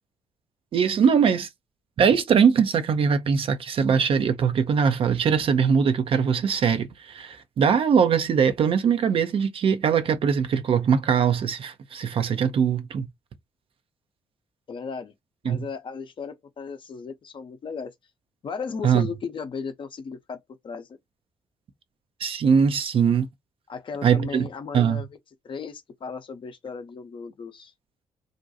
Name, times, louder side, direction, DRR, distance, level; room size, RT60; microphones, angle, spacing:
voice 1, 0.7-1.5 2.0-13.1 15.5-15.6 18.8-19.1 22.2-23.3 24.0-24.5 24.7-25.0, right 7 dB, 50° right, 0.5 m, -21 dB
voice 2, 14.7-15.1 15.4-17.9 18.4-20.4 20.6-20.9 23.7-25.1 25.4-27.7, left 5 dB, 45° left, 0.6 m, -35 dB
2.5 x 2.2 x 2.6 m
hypercardioid pair, 40°, 12 cm